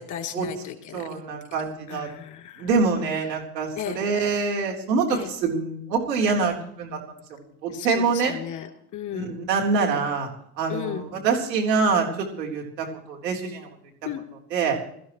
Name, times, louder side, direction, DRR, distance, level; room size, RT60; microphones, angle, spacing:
voice 1, 0.0-0.9 1.9-2.7 3.8-4.0 5.1-5.3 7.7-8.7 8.9-9.4 10.7-11.0 14.0-14.2, left 10 dB, 35° left, 4 dB, 3.4 m, -34 dB
voice 2, 0.9-2.1 2.6-6.9 7.6-8.3 9.1-10.3 10.6-13.7 14.5-14.8, right 4 dB, 90° right, 1 dB, 4.0 m, -25 dB
21.0 x 14.5 x 3.2 m, 0.69 s
hypercardioid pair, 100°, 49 cm